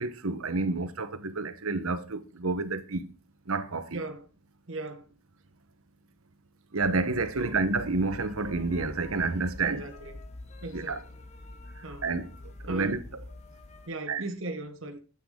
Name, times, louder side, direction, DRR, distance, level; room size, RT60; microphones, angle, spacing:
voice 1, 0.0-3.1 3.5-4.0 6.7-9.8 10.7-11.0 11.8-12.3 12.6-13.2 14.1-14.2, right 3 dB, 90° right, 1.2 m, -29 dB
voice 2, 3.9-4.3 4.7-5.1 7.4-7.6 9.6-10.2 10.6-11.0 11.8-12.0 12.7-13.0 13.9-15.0, right 2 dB, 65° right, 1.4 m, -37 dB
sound 1, 6.8-13.9, left 2 dB, 30° left, 0.9 m, -46 dB
9.6 x 8.3 x 3.9 m
head